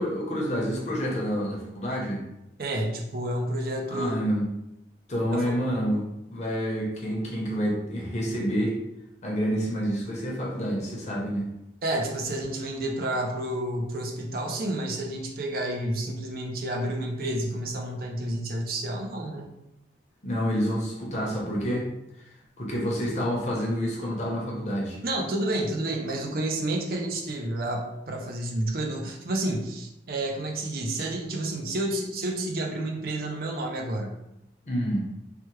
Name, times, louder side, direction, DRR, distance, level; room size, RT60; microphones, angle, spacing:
voice 1, 0.0-2.2 3.9-4.5 5.1-8.8 9.2-11.5 20.2-21.9 22.6-25.0 34.7-35.0, equal, 40° left, -3 dB, 0.8 m, -28 dB
voice 2, 2.6-4.2 5.3-5.5 11.8-19.5 25.0-34.2, right 1 dB, 55° right, 0 dB, 0.5 m, -30 dB
3.3 x 2.2 x 3.0 m, 0.87 s
head